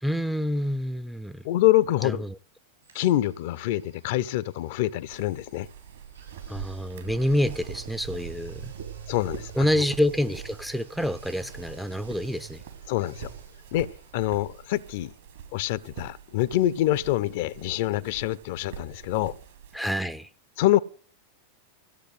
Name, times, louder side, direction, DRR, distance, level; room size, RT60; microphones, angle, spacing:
voice 1, 0.0-1.5 2.0-2.4 6.5-8.7 9.5-12.6 19.7-20.3, equal, ahead, 0.6 m, -27 dB
voice 2, 1.4-2.2 2.9-5.7 9.1-9.7 12.9-13.3 13.7-13.9 14.1-15.1 15.5-19.3 20.6-20.8, left 15 dB, 50° left, 0.6 m, -25 dB
sound 1, 2.8-18.6 18.9-19.0, right 7 dB, 80° right, 5.9 m, -50 dB
sound 2, 5.1-19.8, right 9 dB, 60° right, 3.0 m, -44 dB
15.0 x 8.2 x 7.7 m
figure-of-eight pair, 90°, 0 cm